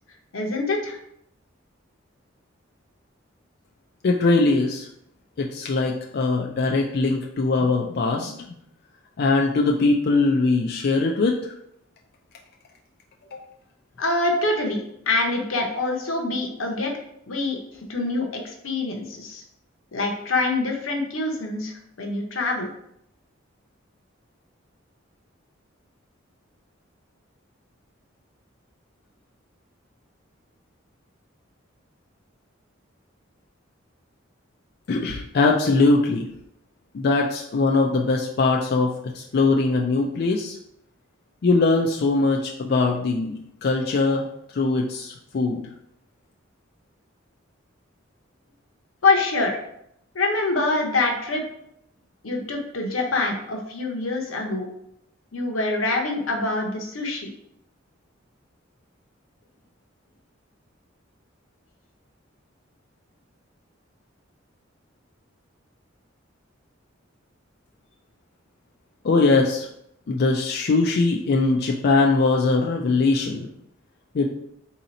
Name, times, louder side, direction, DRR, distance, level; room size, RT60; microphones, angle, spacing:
voice 1, 0.3-1.0 14.0-16.9 17.3-17.6 17.9-19.4 19.9-22.7 49.0-49.6 50.1-51.4 52.2-54.7 55.3-57.3, left 2 dB, 90° left, 1 dB, 0.8 m, -25 dB
voice 2, 4.0-4.9 5.4-8.6 9.2-11.5 13.3-13.4 34.9-36.2 36.9-40.6 41.4-44.3 44.5-45.6 69.0-69.7 70.1-73.5 74.1-74.3, left 3 dB, 55° left, 0 dB, 0.4 m, -21 dB
3.8 x 2.9 x 4.0 m, 0.76 s
head